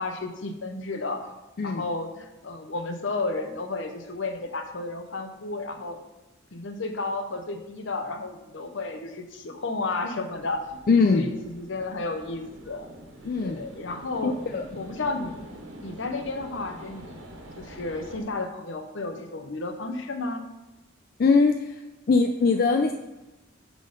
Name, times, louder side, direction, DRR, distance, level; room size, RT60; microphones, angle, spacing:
voice 1, 0.0-1.3 1.6-6.0 6.5-10.6 11.1-12.9 13.4-14.4 14.7-15.4 15.8-17.2 17.6-20.4, left 3 dB, 65° left, 7 dB, 0.8 m, -32 dB
sound 1, 10.3-18.2, right 1 dB, 90° right, 1.4 m, -45 dB
voice 2, 10.9-11.4 13.2-13.6 14.2-14.7 21.2-21.8 22.1-22.9, left 4 dB, 45° left, 5 dB, 0.4 m, -21 dB
8.8 x 3.8 x 5.1 m, 1.0 s
head